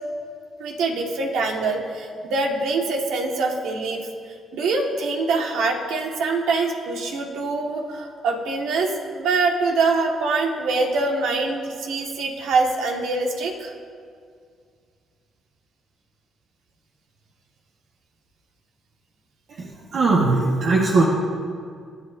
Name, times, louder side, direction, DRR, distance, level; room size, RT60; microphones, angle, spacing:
voice 1, 0.6-13.7, right 3 dB, 85° right, 1 dB, 1.8 m, -24 dB
voice 2, 19.9-21.0, right 3 dB, 65° right, -3 dB, 1.6 m, -19 dB
24.0 x 9.7 x 2.7 m, 2.1 s
cardioid pair, 80°, 0 cm